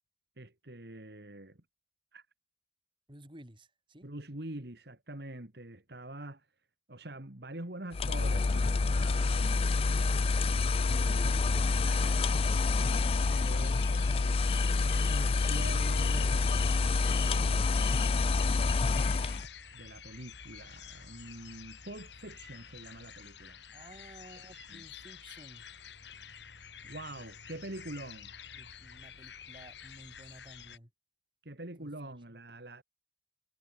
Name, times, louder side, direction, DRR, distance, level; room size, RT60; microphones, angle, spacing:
voice 1, 0.4-1.6 2.1-2.3 4.0-6.5 6.9-9.8 10.8-12.4 13.1-16.6 17.2-18.8 19.0-23.6 24.5-24.8 26.8-28.3 31.4-32.8, right 1 dB, 65° right, 2.4 m, -45 dB
voice 2, 3.1-4.1 23.7-25.7 28.5-30.9 31.8-32.4, right 1 dB, 30° right, 6.3 m, -54 dB
sound 1, 7.9-19.5, left 4 dB, 35° left, 0.4 m, -27 dB
sound 2, 12.7-30.8, left 8 dB, 80° left, 2.3 m, -47 dB
head